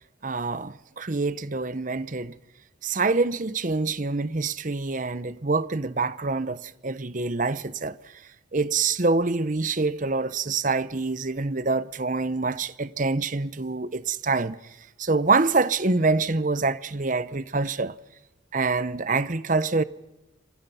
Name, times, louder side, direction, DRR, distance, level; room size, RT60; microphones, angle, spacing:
voice 1, 0.2-2.3 2.8-8.0 8.5-14.6 15.0-17.9 18.5-19.8, right 3 dB, 40° right, 0.8 m, -26 dB
27.5 x 26.5 x 5.7 m
head